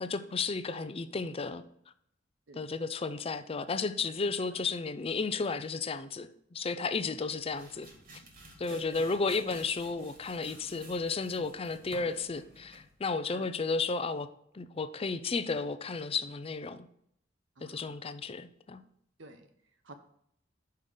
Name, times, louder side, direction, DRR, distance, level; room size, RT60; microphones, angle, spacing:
voice 1, 0.0-1.6 2.6-7.9 8.6-14.3 14.5-16.9 17.6-18.8, left 4 dB, 30° left, 12 dB, 0.5 m, -33 dB
sound 1, 7.2-13.0, right 2 dB, 55° right, 1.8 m, -53 dB
voice 2, 8.7-9.0 13.3-13.5 17.6-18.1 19.2-19.9, right 2 dB, 75° right, 6 dB, 0.9 m, -51 dB
5.6 x 5.1 x 6.5 m, 0.71 s
head